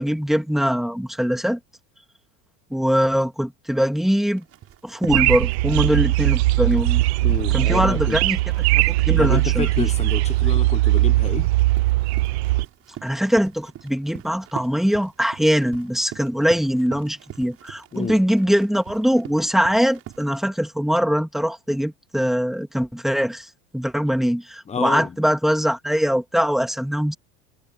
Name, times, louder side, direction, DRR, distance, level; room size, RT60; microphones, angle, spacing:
voice 1, 0.0-1.6 2.7-4.4 4.8-7.0 7.5-8.4 8.7-9.7 13.0-23.5 23.7-27.1, equal, ahead, 2.5 m, -22 dB
Run, 4.4-20.4, right 13 dB, 45° right, 7.0 m, -43 dB
sound 1, 5.1-12.7, right 19 dB, 75° right, 0.9 m, -20 dB
voice 2, 7.2-8.2 9.2-11.5 17.9-18.2 24.7-25.1, left 6 dB, 20° left, 1.2 m, -29 dB
supercardioid pair, 110°, 32 cm